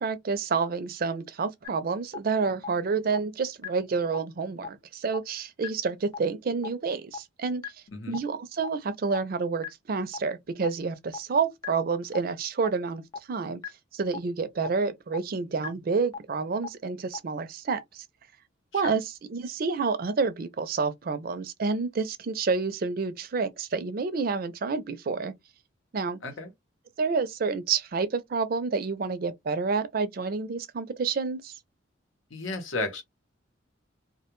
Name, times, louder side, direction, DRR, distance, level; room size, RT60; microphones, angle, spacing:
voice 1, 0.0-7.6 8.1-13.0 13.3-13.6 13.9-18.0 18.7-25.3 25.9-26.2 27.0-31.5, right 4 dB, 50° right, 0.4 m, -29 dB
sound 1, 1.6-1.7 2.1-2.2 2.6-2.7 3.1-3.2 3.6-3.7 4.1-4.2 4.6-4.7 5.1-5.2 5.6-5.7 6.1-6.2 6.6-6.7 7.1-7.2 7.6-7.7 8.1-8.2 8.6-8.7 9.1-9.2 9.6-9.7 10.1-10.2 10.6-10.7 11.1-11.2 11.6-11.7 12.1-12.2 12.6-12.7 13.1-13.2 13.6-13.7 14.1-14.2 14.6-14.7 15.1-15.2 15.6-15.7 16.1-16.2 16.6-16.7 17.1-17.2, left 6 dB, 20° left, 0.3 m, -34 dB
voice 2, 32.3-33.0, left 3 dB, 90° left, 0.9 m, -33 dB
2.3 x 2.1 x 2.9 m
head